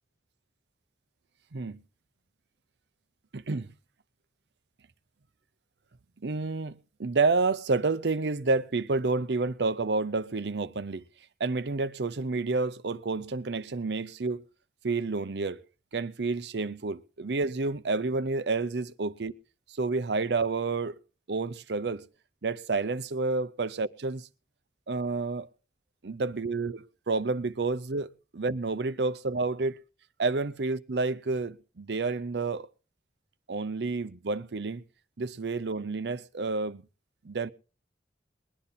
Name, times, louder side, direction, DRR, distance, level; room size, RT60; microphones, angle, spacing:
voice 1, 3.3-3.7 6.2-11.0 11.4-14.4 14.8-15.6 15.9-19.3 19.7-21.0 21.3-22.0 22.4-24.3 24.9-25.5 26.0-29.8 30.2-32.7 33.5-34.8 35.2-36.8 37.2-37.5, right 3 dB, 75° right, 0.7 m, -29 dB
21.0 x 10.0 x 4.1 m
head